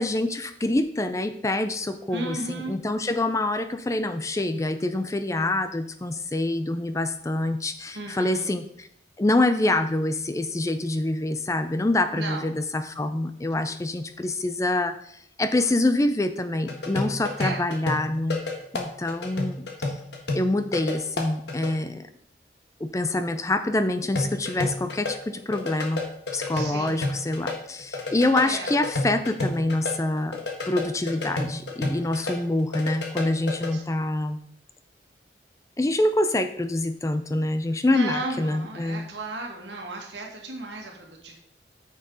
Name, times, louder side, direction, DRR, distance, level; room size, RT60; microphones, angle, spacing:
voice 1, 0.0-8.9 9.2-18.4 18.7-19.9 20.3-22.1 22.8-26.0 26.3-30.4 30.7-34.4 35.8-39.1, left 2 dB, 15° left, 10 dB, 0.4 m, -26 dB
voice 2, 2.1-2.7 7.9-8.5 12.1-12.5 17.4-17.6 26.5-27.0 28.4-28.7 33.7-33.8 37.9-41.4, right 2 dB, 70° right, 1 dB, 2.0 m, -34 dB
sound 1, 16.7-21.7 24.1-27.5 27.8-32.3 32.6-33.7, left 2 dB, 65° left, 1.5 m, -30 dB
9.2 x 6.4 x 4.0 m, 0.71 s
head